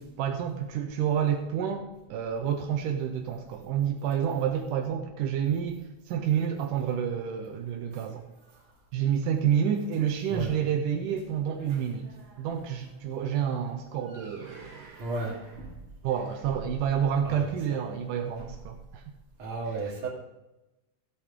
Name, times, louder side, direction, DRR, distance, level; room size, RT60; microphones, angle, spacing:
voice 1, 0.0-8.3 8.9-15.0 16.0-19.0, right 8 dB, 85° right, 4 dB, 2.4 m, -29 dB
voice 2, 10.3-10.6 11.6-12.4 14.1-15.8 17.2-17.8 18.4-18.5 19.4-20.1, right 3 dB, 40° right, -3 dB, 3.5 m, -37 dB
15.5 x 8.6 x 3.7 m, 0.97 s
omnidirectional pair, 3.7 m